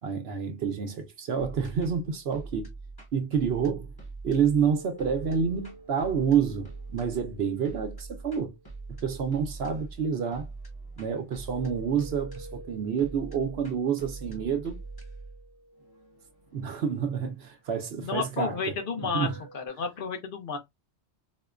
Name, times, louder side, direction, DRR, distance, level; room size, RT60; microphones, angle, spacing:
voice 1, 0.0-2.7 3.1-3.9 4.2-8.6 9.0-10.5 11.0-14.8 16.5-18.6 19.1-19.4, right 7 dB, 65° right, 0.9 m, -28 dB
sound 1, 1.4-18.5, right 3 dB, 25° left, 0.8 m, -44 dB
sound 2, 4.7-10.1 11.5-17.0 18.4-19.7, right 1 dB, 80° left, 2.2 m, -51 dB
voice 2, 18.0-20.6, left 5 dB, 55° left, 0.8 m, -32 dB
4.2 x 2.1 x 2.4 m
omnidirectional pair, 1.2 m